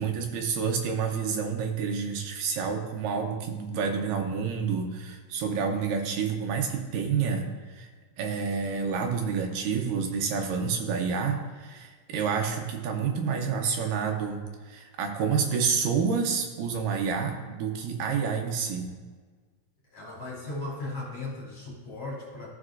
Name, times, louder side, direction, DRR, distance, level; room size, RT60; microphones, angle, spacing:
voice 1, 0.0-7.9 8.2-18.9, right 6 dB, 80° right, 3 dB, 2.4 m, -29 dB
voice 2, 19.9-22.5, left 2 dB, 50° left, -4 dB, 2.5 m, -37 dB
14.5 x 5.3 x 2.5 m, 1.4 s
omnidirectional pair, 3.9 m